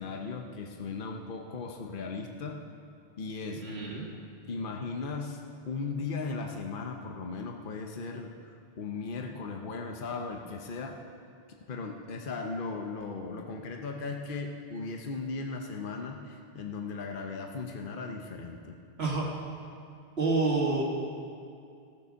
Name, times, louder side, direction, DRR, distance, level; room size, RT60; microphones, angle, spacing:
voice 1, 0.0-2.6 3.2-3.7 4.5-5.4 5.7-8.3 8.8-10.9 11.7-18.8, left 4 dB, 60° left, 2 dB, 1.1 m, -37 dB
voice 2, 3.6-4.1 19.0-19.3 20.2-20.8, right 3 dB, 85° right, -3 dB, 2.4 m, -28 dB
16.5 x 6.8 x 6.4 m, 2.4 s
omnidirectional pair, 1.0 m